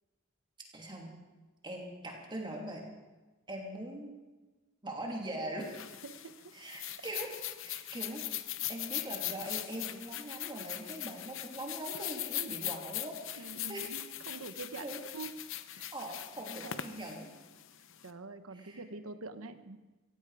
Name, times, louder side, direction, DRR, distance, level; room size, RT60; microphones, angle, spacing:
voice 1, 0.7-1.1 1.6-2.8 3.5-4.1 4.8-5.7 6.5-7.3 7.6-8.2 8.7-13.9 14.8-15.0 15.9-17.3 18.5-18.8, right 1 dB, 25° right, 0 dB, 2.9 m, -41 dB
sound 1, 5.6-18.1, left 13 dB, 65° left, 0.8 m, -40 dB
voice 2, 6.0-6.5 12.3-12.6 13.3-15.3 15.7-15.9 16.6-16.8 18.0-19.8, right 3 dB, 80° right, 10 dB, 1.1 m, -45 dB
16.5 x 16.0 x 4.9 m, 1.2 s
head